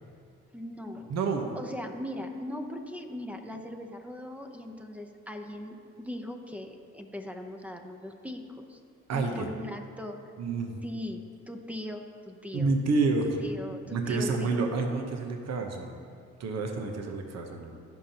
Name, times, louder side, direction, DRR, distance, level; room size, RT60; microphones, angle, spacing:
voice 1, 0.5-1.1 1.5-8.8 9.1-10.2 10.8-11.2 11.5-12.7 13.4-14.6, left 1 dB, 5° right, 4 dB, 0.7 m, -39 dB
voice 2, 1.1-1.5 9.1-9.5 10.4-10.8 12.5-13.4 13.9-15.9 16.4-17.8, right 3 dB, 60° right, 3 dB, 1.0 m, -29 dB
14.5 x 5.7 x 2.9 m, 2.3 s
cardioid pair, 90°, 30 cm